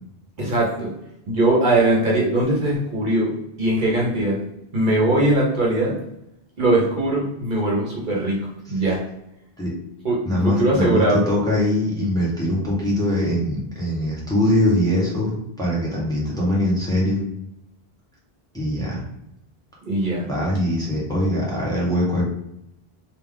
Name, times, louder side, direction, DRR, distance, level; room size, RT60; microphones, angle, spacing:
voice 1, 0.4-0.9 1.3-3.3 3.6-4.4 4.7-5.9 6.6-9.0 10.0-10.2 10.4-11.2 19.8-20.3, right 1 dB, 55° right, -3 dB, 1.0 m, -20 dB
voice 2, 10.2-17.2 18.5-19.0 20.3-22.3, left 1 dB, 5° left, -5 dB, 1.0 m, -22 dB
3.3 x 2.5 x 3.5 m, 0.82 s
omnidirectional pair, 1.0 m